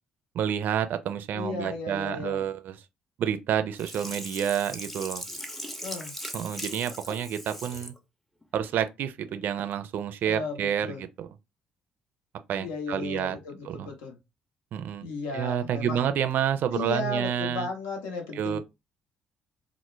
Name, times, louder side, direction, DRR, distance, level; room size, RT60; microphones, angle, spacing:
voice 1, 0.3-2.8 3.2-5.2 6.3-7.9 8.5-11.3 12.5-13.4 13.7-13.9 14.7-15.1 15.3-17.7 18.3-18.6, right 9 dB, 60° right, 0.4 m, -29 dB
voice 2, 1.3-2.5 5.8-6.1 10.2-11.0 12.6-14.2 15.0-16.1 16.7-18.6, left 3 dB, 75° left, 0.8 m, -35 dB
Sink (filling or washing), 3.8-8.0 8.4-8.5, equal, 5° left, 0.5 m, -39 dB
2.2 x 2.0 x 3.0 m
hypercardioid pair, 50°, 4 cm